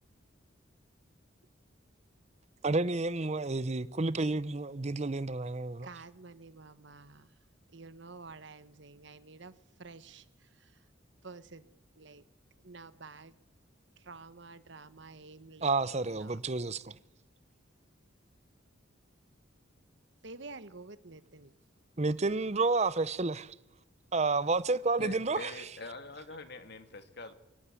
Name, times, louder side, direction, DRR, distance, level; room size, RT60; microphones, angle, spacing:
voice 1, 2.6-5.9 15.6-17.0 22.0-23.5 24.1-25.5, right 3 dB, 35° right, 0.7 m, -30 dB
voice 2, 5.8-7.3 7.7-9.5 9.8-10.8 11.2-12.2 12.6-13.3 14.0-16.4 20.2-21.5, right 3 dB, 65° right, 1.2 m, -50 dB
voice 3, 25.0-27.3, left 3 dB, 55° left, 2.0 m, -44 dB
24.0 x 17.0 x 8.5 m
head